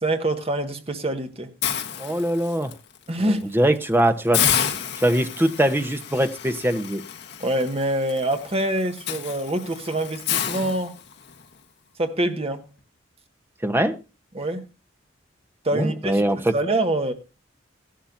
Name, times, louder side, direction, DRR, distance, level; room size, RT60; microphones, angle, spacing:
voice 1, 0.0-1.5 3.1-3.4 7.4-11.0 12.0-12.6 14.3-14.7 15.6-16.2 16.5-17.1, right 1 dB, 30° right, 1.5 m, -25 dB
Hiss, 1.6-2.7 3.2-3.4 3.8-3.9 4.3-11.4, left 9 dB, 60° left, 1.3 m, -29 dB
voice 2, 2.0-2.7 3.2-4.4 5.0-7.0 13.6-14.0 15.7-16.5, right 1 dB, 10° right, 1.0 m, -22 dB
15.0 x 11.5 x 2.6 m
head